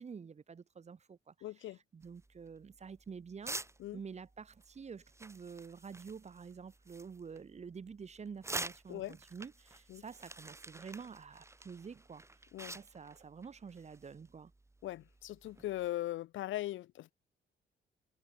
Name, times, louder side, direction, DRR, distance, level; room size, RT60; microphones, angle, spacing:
voice 1, 0.0-3.6 3.9-12.2 12.7-14.5, right 6 dB, 35° right, 1.1 m, -48 dB
voice 2, 1.4-1.8 3.8-4.0 8.9-9.2 9.9-10.0 12.5-12.8 14.8-17.1, left 15 dB, 75° left, 0.7 m, -40 dB
sound 1, 2.0-15.9, right 2 dB, 15° right, 2.1 m, -49 dB
cardioid pair, 90°, 20 cm